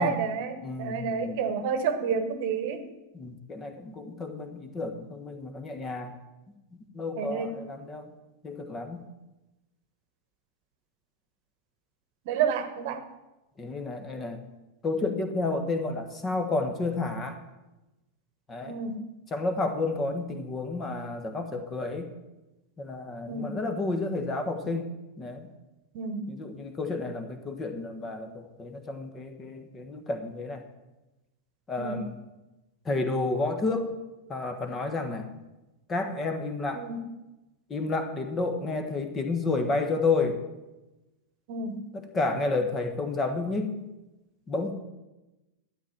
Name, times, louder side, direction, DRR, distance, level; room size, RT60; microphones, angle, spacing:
voice 1, 0.0-2.8 7.2-7.5 12.3-13.0 18.7-19.1 23.3-23.6 25.9-26.3 31.8-32.0 36.7-37.0 41.5-41.8, right 6 dB, 50° right, 9 dB, 1.2 m, -30 dB
voice 2, 0.6-1.4 3.1-6.2 6.9-8.1 8.4-9.0 13.6-14.4 14.8-17.4 18.5-18.7 19.3-22.1 22.8-24.9 25.2-25.5 26.3-30.6 31.7-32.2 32.8-33.9 34.3-35.3 35.9-36.8 37.7-40.4 41.9-43.8 44.5-44.8, left 3 dB, 20° left, 7 dB, 1.5 m, -31 dB
12.0 x 9.0 x 6.0 m, 1.0 s
figure-of-eight pair, 90°, 0 cm